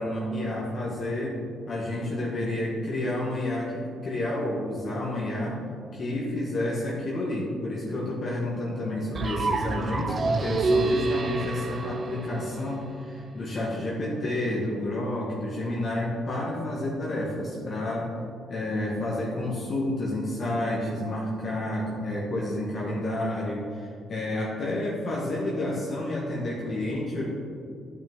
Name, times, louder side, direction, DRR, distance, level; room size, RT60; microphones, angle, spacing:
voice 1, 0.0-1.4 1.7-5.6 5.9-18.1 18.5-27.2, left 1 dB, 50° left, -5 dB, 1.7 m, -30 dB
sound 1, 9.1-13.1, right 3 dB, 45° right, 0.6 m, -27 dB
10.5 x 5.8 x 3.7 m, 2.4 s
cardioid pair, 90°, 0 cm